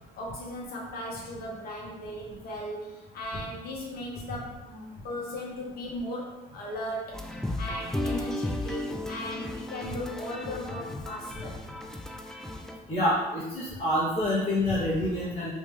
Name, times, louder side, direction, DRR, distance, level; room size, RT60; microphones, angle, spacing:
voice 1, 0.0-11.6, equal, 65° left, -3 dB, 1.3 m, -37 dB
sound 1, 7.1-12.8, left 1 dB, 5° left, 0.4 m, -35 dB
voice 2, 12.9-15.5, left 1 dB, 45° left, -11 dB, 1.3 m, -27 dB
3.2 x 3.0 x 3.5 m, 1.1 s
cardioid pair, 110°, 17 cm